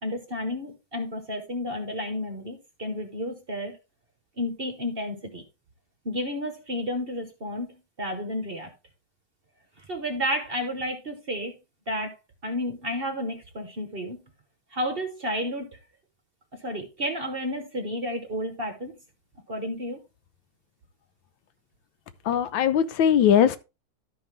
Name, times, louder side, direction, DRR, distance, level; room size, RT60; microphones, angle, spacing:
voice 1, 0.0-3.8 4.4-5.4 6.0-8.7 9.8-11.6 11.9-12.2 12.4-14.2 14.7-15.8 16.5-18.9 19.5-20.0, equal, 40° right, 1.0 m, -31 dB
voice 2, 22.2-23.6, left 9 dB, 85° left, 1.5 m, -20 dB
12.0 x 5.5 x 3.2 m
omnidirectional pair, 2.0 m